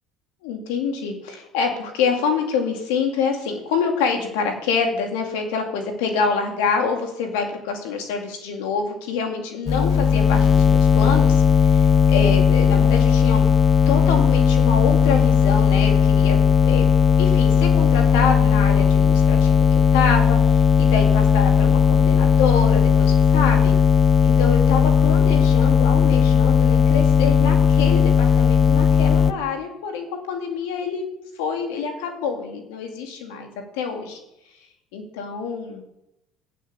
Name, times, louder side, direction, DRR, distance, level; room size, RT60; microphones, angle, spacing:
voice 1, 0.4-13.5 13.9-16.9 17.2-23.8 24.2-31.1 31.4-33.5 33.7-34.2 34.9-35.8, left 5 dB, 90° left, 4 dB, 2.4 m, -26 dB
sound 1, 9.7-29.3, left 7 dB, 35° left, 0.6 m, -16 dB
9.1 x 8.3 x 6.9 m, 0.84 s
supercardioid pair, 100°, 0 cm